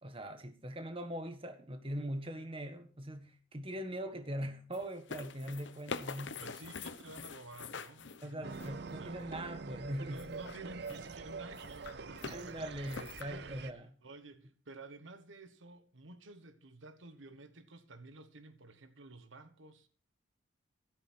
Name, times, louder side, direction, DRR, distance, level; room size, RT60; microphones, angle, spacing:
voice 1, 0.0-6.4 8.2-10.2 12.2-13.8, equal, 25° right, 1.5 m, -41 dB
sound 1, 4.7-8.9 10.1-11.1 11.5-12.4 12.9-13.2, left 4 dB, 65° left, 1.0 m, -45 dB
voice 2, 6.4-8.5 8.8-9.4 10.1-12.9 13.3-19.9, right 2 dB, 70° right, 1.3 m, -52 dB
sound 2, 8.4-13.7, right 4 dB, 55° right, 0.6 m, -45 dB
13.5 x 13.0 x 4.4 m
head